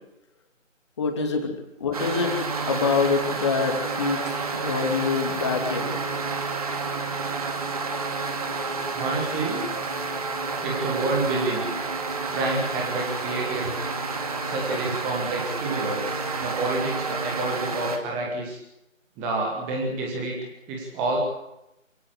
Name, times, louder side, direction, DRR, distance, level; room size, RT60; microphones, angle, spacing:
voice 1, 1.0-1.5 1.8-2.4 2.7-6.0, left 5 dB, 20° left, 4 dB, 2.8 m, -25 dB
sound 1, 1.9-18.0, right 4 dB, 30° right, 2.5 m, -30 dB
voice 2, 8.9-9.7 10.6-11.6 12.3-13.7 14.4-18.6 19.2-20.4 20.7-21.2, right 2 dB, 5° right, 0 dB, 1.4 m, -28 dB
27.5 x 17.0 x 8.3 m, 0.89 s
figure-of-eight pair, 155°, 40 cm